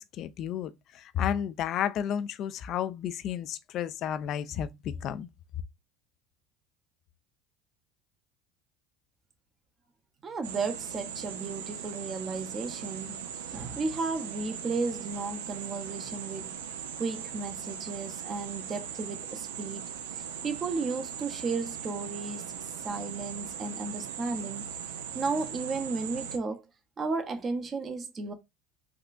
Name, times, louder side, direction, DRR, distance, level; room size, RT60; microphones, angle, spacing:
voice 1, 0.0-5.3, left 9 dB, 55° left, 0.3 m, -32 dB
voice 2, 10.2-16.6 17.0-19.9 20.1-22.4 22.8-24.7 25.1-26.6 27.0-28.3, right 4 dB, 35° right, 0.7 m, -34 dB
sound 1, 10.4-26.4, right 8 dB, 85° right, 0.4 m, -39 dB
3.6 x 2.4 x 2.5 m
hypercardioid pair, 80°, 0 cm